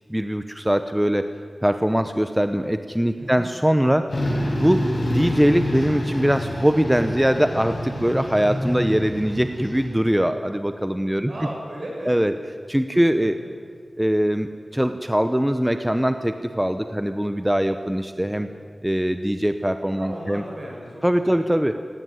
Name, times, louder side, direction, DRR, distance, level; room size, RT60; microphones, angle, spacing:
voice 1, 0.1-1.3 1.6-4.3 4.6-11.3 12.1-12.3 12.7-13.4 14.0-18.5 18.8-20.4 21.0-21.8, equal, 5° right, 9 dB, 0.8 m, -22 dB
sound 1, 4.1-9.9, left 1 dB, 50° left, 7.6 m, -28 dB
voice 2, 11.3-12.2 13.1-13.5 20.0-21.4, right 1 dB, 55° right, -2 dB, 7.7 m, -36 dB
17.5 x 17.0 x 9.6 m, 2.1 s
wide cardioid pair, 85°, 0 cm